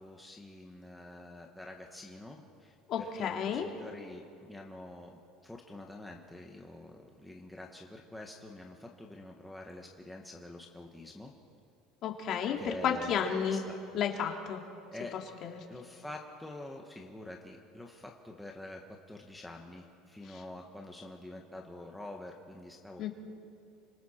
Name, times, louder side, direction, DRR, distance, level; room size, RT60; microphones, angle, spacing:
voice 1, 0.0-11.3 12.6-13.8 14.9-15.2 15.7-23.1, left 1 dB, 5° left, 0 dB, 1.2 m, -46 dB
voice 2, 2.9-3.7 12.0-13.6 13.9-14.6 15.4-15.6 20.3-20.4 23.0-23.1, left 7 dB, 40° left, 2 dB, 2.2 m, -32 dB
29.5 x 26.0 x 4.4 m, 2.6 s
cardioid pair, 165°, 0 cm